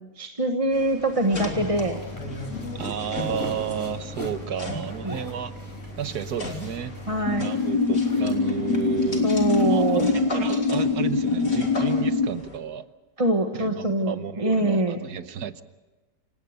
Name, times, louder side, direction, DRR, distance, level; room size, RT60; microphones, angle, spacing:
voice 1, 0.2-2.0 5.0-5.2 7.1-7.5 9.2-10.0 13.2-15.0, right 1 dB, 20° right, 4 dB, 1.4 m, -24 dB
sound 1, 0.7-12.6, left 1 dB, 45° left, 3.6 m, -36 dB
sound 2, 1.7-10.1, equal, 10° left, 3.7 m, -46 dB
voice 2, 2.7-5.5 6.0-6.9 7.4-9.3 9.6-12.9 13.6-15.6, right 9 dB, 70° right, 12 dB, 1.5 m, -32 dB
sound 3, 7.3-12.3, left 4 dB, 70° left, 1.6 m, -23 dB
28.0 x 18.0 x 6.6 m, 1.2 s
omnidirectional pair, 1.8 m